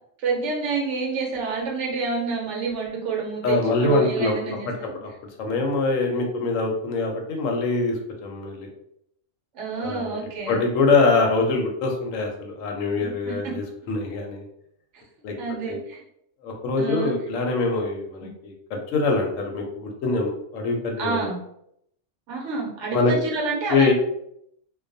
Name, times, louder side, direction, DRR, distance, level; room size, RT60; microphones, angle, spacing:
voice 1, 0.2-4.7 9.5-10.6 13.0-13.5 15.4-16.0 16.8-17.1 18.2-18.3 21.0-21.4 22.3-23.9, right 4 dB, 70° right, -1 dB, 1.0 m, -28 dB
voice 2, 3.4-4.4 4.6-4.7 5.0-5.1 5.4-8.7 9.8-10.2 10.5-14.4 15.2-15.4 15.7-15.8 16.4-21.3 22.9-23.1 23.7-23.9, left 3 dB, 85° left, 2 dB, 1.0 m, -24 dB
2.3 x 2.2 x 2.5 m, 0.74 s
omnidirectional pair, 1.3 m